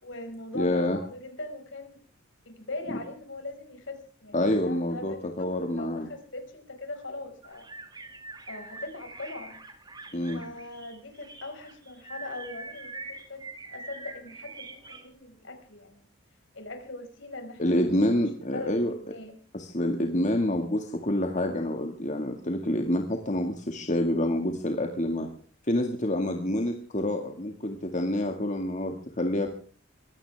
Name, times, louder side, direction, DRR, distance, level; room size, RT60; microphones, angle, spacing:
voice 1, 0.0-2.0 2.5-7.7 8.5-9.6 10.3-16.1 16.5-18.2 18.5-19.4, left 2 dB, 65° left, 5 dB, 5.5 m, -41 dB
voice 2, 0.5-1.0 4.3-6.1 10.1-10.4 17.6-18.9 19.5-25.3 25.7-29.5, left 1 dB, 35° left, 3 dB, 2.0 m, -27 dB
sound 1, 7.4-15.0, right 3 dB, 20° right, 2.5 m, -44 dB
24.0 x 16.0 x 3.5 m, 0.42 s
head